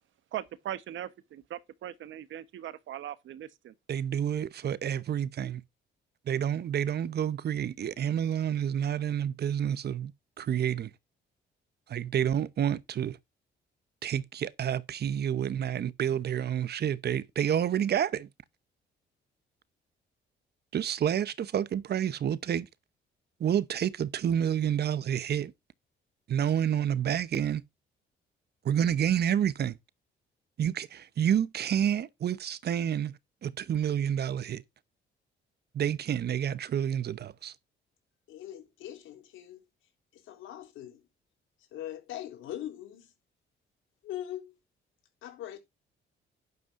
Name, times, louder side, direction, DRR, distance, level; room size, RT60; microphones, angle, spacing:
voice 1, 0.3-3.7, right 11 dB, 75° right, 1.1 m, -40 dB
voice 2, 3.9-5.6 6.3-10.1 10.4-10.9 11.9-13.2 14.0-18.3 20.7-22.7 23.4-25.5 26.3-27.6 28.6-29.8 30.6-34.6 35.7-37.5, right 9 dB, 55° right, 0.9 m, -29 dB
voice 3, 38.3-39.6 40.1-41.0 41.7-43.1 44.0-44.5 45.2-45.6, left 12 dB, 90° left, 3.7 m, -41 dB
11.5 x 10.5 x 2.6 m
cardioid pair, 90°, 20 cm